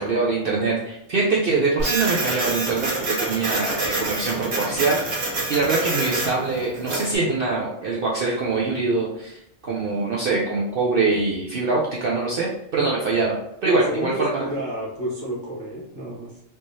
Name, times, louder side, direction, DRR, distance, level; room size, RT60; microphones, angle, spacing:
voice 1, 0.0-14.4, right 3 dB, 60° right, -4 dB, 0.7 m, -24 dB
Printer, 1.8-7.2, right 2 dB, 85° right, 1.4 m, -27 dB
voice 2, 13.6-16.4, right 1 dB, 40° right, -6 dB, 1.3 m, -30 dB
3.5 x 3.1 x 2.6 m, 0.80 s
omnidirectional pair, 1.3 m